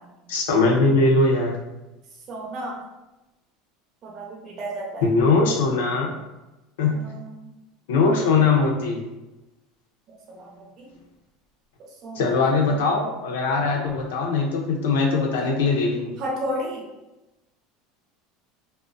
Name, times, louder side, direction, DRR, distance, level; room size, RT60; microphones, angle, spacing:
voice 1, 0.3-1.6 5.0-6.1 6.8-7.0 7.9-9.0 12.2-16.2, left 3 dB, 85° left, 0 dB, 0.5 m, -21 dB
voice 2, 2.3-2.8 4.0-5.1 6.9-7.5 10.3-10.9 12.0-12.4 15.4-15.5 16.2-16.8, equal, 50° right, -3 dB, 0.7 m, -33 dB
2.3 x 2.1 x 2.5 m, 1.0 s
supercardioid pair, 105°, 0 cm